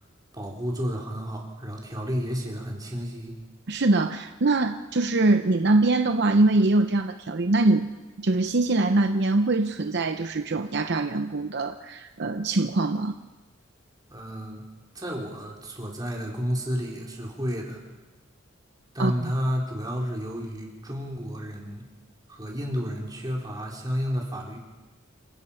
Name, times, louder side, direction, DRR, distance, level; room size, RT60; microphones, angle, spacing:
voice 1, 0.3-3.3 14.1-14.6 14.9-17.8 18.9-21.8 22.3-24.6, equal, 20° right, -2 dB, 4.1 m, -31 dB
voice 2, 3.7-7.9 8.2-13.1 19.0-19.3, right 2 dB, 55° right, 7 dB, 0.8 m, -23 dB
27.5 x 17.5 x 5.8 m, 1.2 s
head